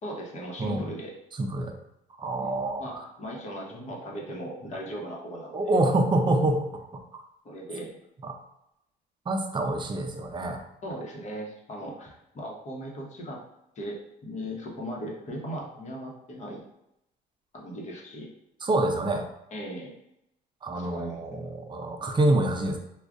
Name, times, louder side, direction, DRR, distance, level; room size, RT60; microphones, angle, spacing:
voice 1, 0.0-1.1 2.3-5.8 7.4-7.9 10.8-13.4 13.8-16.6 17.5-18.3 19.5-19.9 20.7-21.5, equal, 45° left, -2 dB, 1.0 m, -38 dB
voice 2, 1.4-1.8 2.2-2.9 5.5-6.8 7.1-7.2 8.2-8.3 9.3-10.6 18.6-19.3 20.6-22.8, right 2 dB, 25° right, 4 dB, 0.5 m, -26 dB
4.6 x 2.4 x 2.5 m, 0.84 s
cardioid pair, 110°, 17 cm